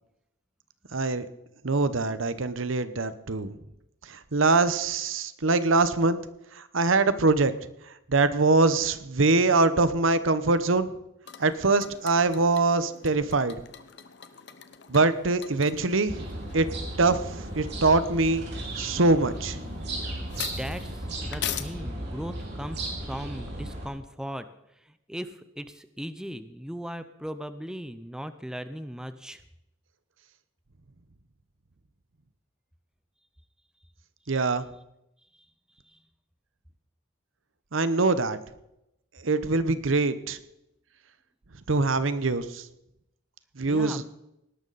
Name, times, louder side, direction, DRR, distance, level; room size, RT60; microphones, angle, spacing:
voice 1, 0.9-1.3 1.6-3.5 4.1-6.2 6.5-7.5 8.1-11.0 11.4-13.6 14.9-16.3 16.5-16.7 17.0-18.4 18.8-19.6 34.3-34.7 37.7-38.4 39.2-40.4 41.7-42.7 43.6-44.0, right 3 dB, 85° right, 13 dB, 1.0 m, -23 dB
sound 1, 11.3-21.6, left 9 dB, 60° left, 1.0 m, -42 dB
sound 2, 16.1-23.9, right 1 dB, 55° right, 4.9 m, -35 dB
voice 2, 20.4-24.5 24.7-29.4 35.3-35.5 35.8-36.0 43.7-44.1, equal, 5° right, 11 dB, 0.7 m, -38 dB
19.0 x 12.0 x 4.1 m, 0.84 s
head